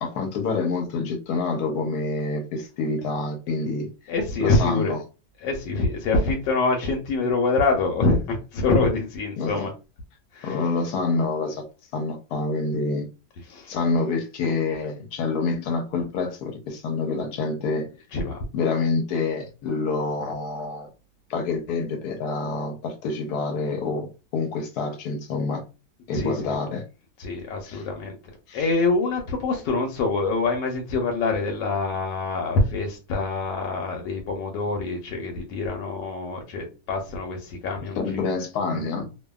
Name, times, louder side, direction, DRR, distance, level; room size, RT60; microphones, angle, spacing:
voice 1, 0.0-3.9 4.4-5.0 9.4-9.7 10.4-11.6 11.9-13.1 13.7-17.9 18.5-20.9 21.3-24.1 24.3-25.6 26.1-26.8 27.7-27.8 28.5-28.7 38.0-39.1, left 4 dB, 75° left, 1.1 m, -27 dB
voice 2, 4.1-5.0 5.4-9.7 10.3-10.6 13.5-13.8 18.1-18.4 26.1-26.6 27.2-28.2 28.5-38.2, left 3 dB, 90° left, 1.3 m, -25 dB
2.6 x 2.5 x 2.2 m
omnidirectional pair, 1.8 m